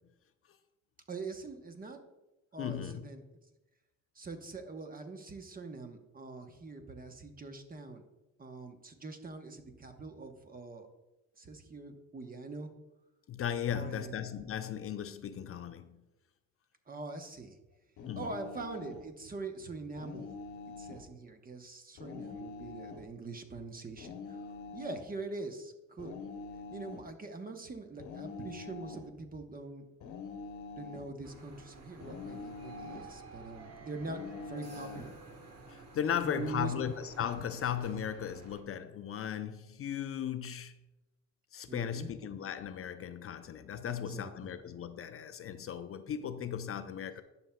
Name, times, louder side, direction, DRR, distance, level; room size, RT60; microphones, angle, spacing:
voice 1, 1.1-2.0 2.5-3.2 4.2-8.0 8.4-10.9 11.4-12.7 13.7-14.1 16.9-17.5 18.2-20.3 20.8-24.4 24.7-26.1 26.7-29.8 30.8-34.2 34.5-35.2 36.2-36.7 41.7-42.1 43.9-44.5, right 3 dB, 30° right, 0.9 m, -43 dB
voice 2, 2.6-3.1 13.3-16.0 18.0-18.3 22.3-22.4 35.7-40.8 41.5-47.2, left 9 dB, 50° left, 0.5 m, -37 dB
sound 1, 18.0-19.1 20.0-21.1 22.0-23.1 24.0-25.1 26.0-27.1 28.0-29.1 30.0-31.1 32.0-33.1 34.0-35.1, left 4 dB, 80° left, 0.9 m, -45 dB
sound 2, 31.2-38.6, right 3 dB, 55° right, 1.3 m, -52 dB
11.0 x 5.8 x 2.2 m
cardioid pair, 90°, 30 cm